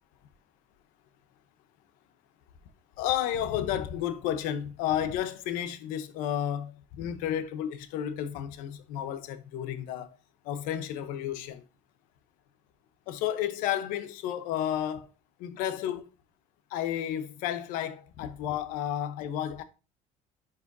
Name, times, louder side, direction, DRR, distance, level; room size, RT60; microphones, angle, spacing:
voice 1, 3.0-10.1 10.4-11.6 13.1-15.1 15.4-16.1 16.7-19.6, left 10 dB, 85° left, 0.9 m, -32 dB
10.5 x 4.9 x 2.7 m
cardioid pair, 135°, 14 cm